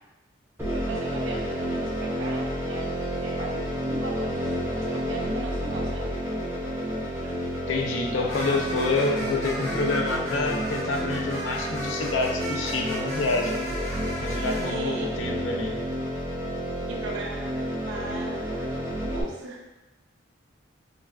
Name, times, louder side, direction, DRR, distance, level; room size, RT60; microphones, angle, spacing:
sound 1, 0.6-19.2, equal, 10° right, 0.4 m, -30 dB
voice 1, 0.7-6.1 7.2-7.3 14.3-15.1 16.9-17.5 17.8-19.6, right 3 dB, 85° right, 0 dB, 0.5 m, -38 dB
sound 2, 0.9-3.8 4.2-14.7, equal, 30° left, 0.8 m, -39 dB
voice 2, 7.7-13.7 14.2-15.8, left 3 dB, 85° left, 2 dB, 0.4 m, -28 dB
4.0 x 2.3 x 2.3 m, 1.0 s
head